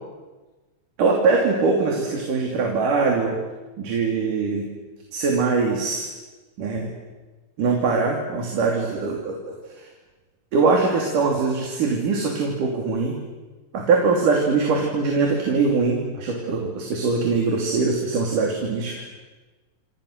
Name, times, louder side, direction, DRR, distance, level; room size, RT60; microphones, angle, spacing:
voice 1, 1.0-3.4 3.8-4.6 5.1-6.1 6.6-6.9 7.6-9.4 10.5-13.2 13.7-19.0, right 4 dB, 65° right, 1 dB, 4.4 m, -22 dB
28.0 x 27.5 x 6.6 m, 1.2 s
omnidirectional pair, 4.0 m